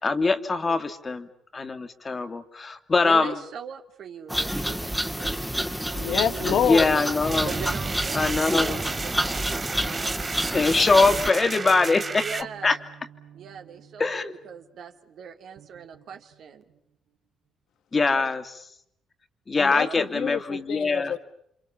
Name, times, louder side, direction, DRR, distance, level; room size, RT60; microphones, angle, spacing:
voice 1, 0.0-1.3 1.5-3.3 6.7-7.5 8.1-8.8 10.5-12.3 12.6-12.8 14.0-14.3 17.9-18.6 19.5-21.1, left 3 dB, 30° left, 9 dB, 2.5 m, -23 dB
voice 2, 3.0-5.7 7.4-10.1 11.3-11.5 12.1-12.8 13.3-14.2 14.4-16.6 19.6-20.0, right 7 dB, 70° right, 5 dB, 2.8 m, -41 dB
sound 1, 4.3-11.3, equal, ahead, 2.0 m, -29 dB
sound 2, 5.9-9.6 11.0-14.8 15.6-16.8, right 10 dB, 85° right, 2.1 m, -45 dB
voice 3, 6.0-7.0 19.6-21.2, left 9 dB, 75° left, 11 dB, 1.5 m, -27 dB
sound 3, 7.2-12.4, right 4 dB, 35° right, 1.2 m, -32 dB
29.5 x 26.5 x 7.3 m, 0.73 s
cardioid pair, 90°, 0 cm